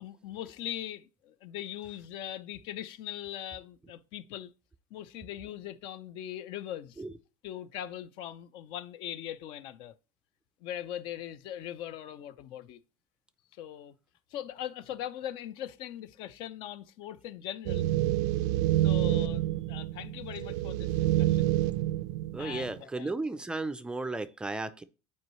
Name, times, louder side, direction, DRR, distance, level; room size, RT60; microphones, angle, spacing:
voice 1, 0.0-4.5 4.9-7.0 7.4-9.9 10.6-12.8 13.5-14.0 14.3-17.9 18.8-21.5 22.4-23.1, left 11 dB, 60° left, 0.6 m, -40 dB
sound 1, 17.7-22.8, right 14 dB, 85° right, 0.4 m, -28 dB
voice 2, 22.3-24.8, right 2 dB, 10° right, 0.4 m, -34 dB
10.5 x 4.6 x 3.1 m
cardioid pair, 150°, 9 cm